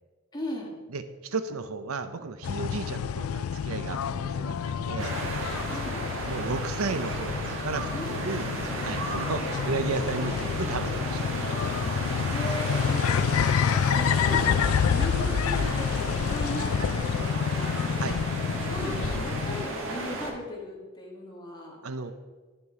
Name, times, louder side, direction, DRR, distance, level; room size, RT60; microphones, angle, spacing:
voice 1, 0.3-0.7 5.7-6.1 7.9-8.2 12.3-13.4 13.9-17.8 18.6-21.8, left 1 dB, 20° left, -2 dB, 2.1 m, -38 dB
voice 2, 0.9-5.1 6.3-8.5 8.8-11.4 15.6-15.7 18.0-18.2 21.8-22.1, right 4 dB, 85° right, 11 dB, 0.7 m, -34 dB
sound 1, 2.4-19.7, left 7 dB, 80° left, 0.4 m, -28 dB
sound 2, 5.0-20.3, right 2 dB, 65° right, 1.5 m, -34 dB
10.5 x 7.0 x 4.8 m, 1.3 s
head